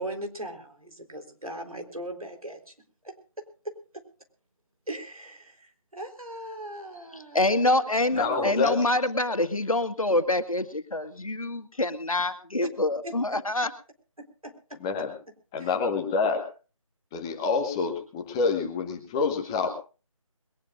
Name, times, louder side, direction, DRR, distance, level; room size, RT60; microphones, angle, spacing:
voice 1, 0.0-2.7 3.0-4.0 4.9-7.8 8.2-8.6 13.0-13.4 14.4-14.8 15.6-15.7, right 1 dB, 85° right, 4 dB, 3.9 m, -39 dB
voice 2, 7.3-13.7, left 2 dB, 75° left, 9 dB, 1.8 m, -26 dB
voice 3, 8.1-8.7 14.8-15.1 15.5-16.5 17.1-19.7, left 4 dB, 10° left, 4 dB, 0.9 m, -27 dB
21.5 x 19.0 x 2.5 m, 0.34 s
figure-of-eight pair, 160°, 18 cm